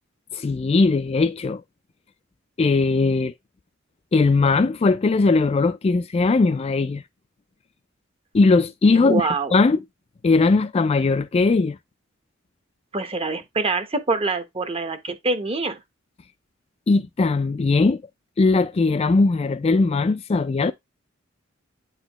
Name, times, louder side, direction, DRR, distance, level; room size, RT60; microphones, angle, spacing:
voice 1, 0.3-1.6 2.6-3.3 4.1-7.0 8.3-9.8 10.2-11.8 16.9-18.0 18.4-20.7, left 3 dB, 30° left, 0.3 m, -19 dB
voice 2, 9.0-9.5 12.9-15.8, right 3 dB, 30° right, 0.9 m, -25 dB
8.8 x 4.1 x 3.0 m
head